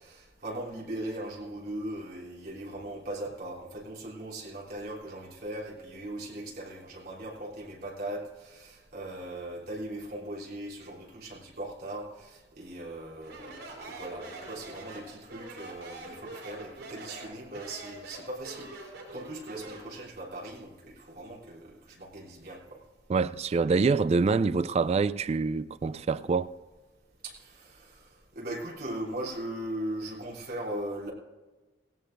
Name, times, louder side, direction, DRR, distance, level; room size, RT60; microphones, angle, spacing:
voice 1, 0.0-22.8 27.2-28.1 28.3-31.1, right 1 dB, 55° right, 3.2 m, -39 dB
Speech, 13.2-20.0, right 2 dB, 85° right, 4.6 m, -44 dB
voice 2, 23.1-26.5, right 4 dB, 35° right, 0.3 m, -26 dB
18.0 x 17.0 x 2.6 m
head